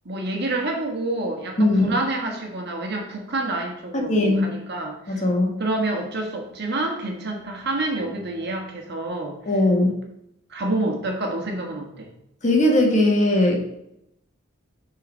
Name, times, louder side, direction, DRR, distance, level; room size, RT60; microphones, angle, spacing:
voice 1, 0.0-5.2 5.6-9.4 10.5-12.1, right 2 dB, 55° right, 1 dB, 1.4 m, -28 dB
voice 2, 1.6-2.0 3.9-4.5 5.1-5.5 9.4-9.9 12.4-13.6, left 1 dB, 40° left, 0 dB, 1.5 m, -19 dB
6.5 x 4.0 x 5.2 m, 0.79 s
head